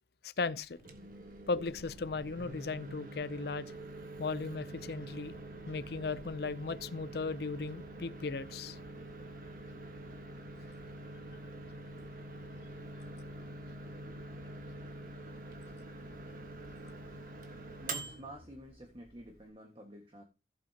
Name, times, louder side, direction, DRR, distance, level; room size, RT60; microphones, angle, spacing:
voice 1, 0.2-0.8 1.5-3.7 4.2-5.4 5.7-8.8, left 4 dB, 60° left, 0.5 m, -36 dB
Microwave oven, 0.7-19.5, right 2 dB, 50° right, 1.4 m, -46 dB
voice 2, 17.8-20.2, right 1 dB, 30° right, 1.6 m, -49 dB
15.0 x 8.4 x 2.9 m
head